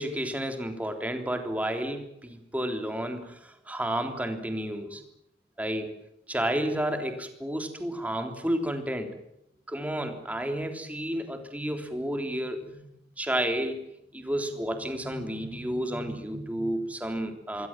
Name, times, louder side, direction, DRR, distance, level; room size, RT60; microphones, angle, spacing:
voice 1, 0.0-5.0 5.6-6.0 6.3-9.1 9.7-13.9 14.1-17.7, right 1 dB, 10° right, 6 dB, 3.5 m, -31 dB
26.5 x 22.0 x 7.5 m, 0.77 s
head